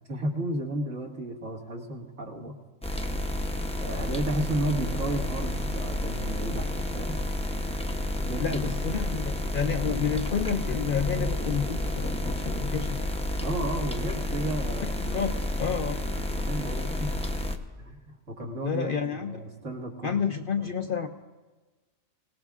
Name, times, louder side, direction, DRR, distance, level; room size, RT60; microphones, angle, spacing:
voice 1, 0.1-2.5 3.8-7.2 8.1-8.8 13.4-15.2 16.3-17.3 17.8-20.3 20.6-20.7, right 1 dB, 75° right, 0 dB, 2.2 m, -33 dB
sound 1, 2.8-17.6, left 1 dB, 5° left, 0.5 m, -30 dB
voice 2, 8.4-13.1 15.0-15.3 15.6-16.0 18.6-19.4 20.0-21.1, left 7 dB, 55° left, 6 dB, 0.6 m, -30 dB
25.5 x 18.0 x 2.5 m, 1.3 s
omnidirectional pair, 1.4 m